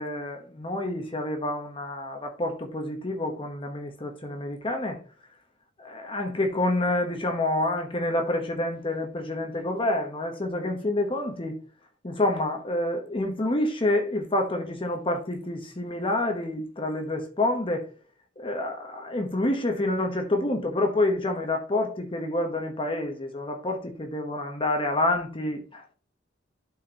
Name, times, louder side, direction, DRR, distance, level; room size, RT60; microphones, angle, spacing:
voice 1, 0.0-5.0 5.8-11.6 12.0-17.8 18.4-25.9, left 1 dB, 30° left, 1.0 m, -28 dB
12.0 x 4.3 x 2.9 m
head